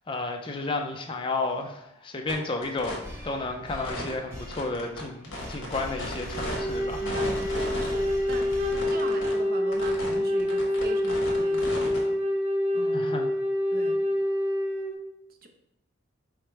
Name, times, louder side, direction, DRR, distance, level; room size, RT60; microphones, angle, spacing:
voice 1, 0.1-3.0 3.2-7.1 12.9-13.3, left 3 dB, 25° left, 3 dB, 0.4 m, -32 dB
sound 1, 2.3-2.4 2.6-3.0 3.8-4.1 4.5-6.6 7.1-7.9 8.3-9.3 9.7-10.1 10.4-12.0, left 1 dB, 60° left, 1.2 m, -35 dB
sound 2, 3.0-9.4, left 1 dB, 10° right, 0.9 m, -40 dB
Wind instrument woodwind instrument, 6.3-14.9, left 1 dB, 70° right, 0.8 m, -27 dB
voice 2, 7.0-12.4 12.7-13.1 13.7-14.0 15.4-15.5, right 2 dB, 45° right, 4 dB, 0.5 m, -40 dB
4.8 x 2.1 x 4.4 m, 0.84 s
head